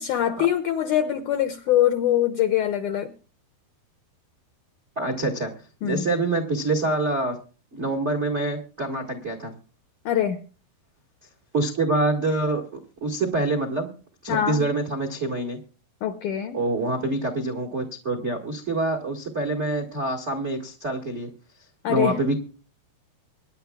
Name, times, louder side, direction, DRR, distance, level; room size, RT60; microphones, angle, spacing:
voice 1, 0.0-3.1 5.8-6.1 10.1-10.4 14.3-14.6 16.0-16.6 21.8-22.2, left 11 dB, 85° left, 8 dB, 1.8 m, -23 dB
voice 2, 4.9-5.5 5.8-7.4 7.7-9.5 11.5-13.9 14.2-15.6 16.5-21.3 21.9-22.3, right 2 dB, 85° right, 2 dB, 0.6 m, -26 dB
24.5 x 10.5 x 2.4 m, 0.37 s
omnidirectional pair, 4.6 m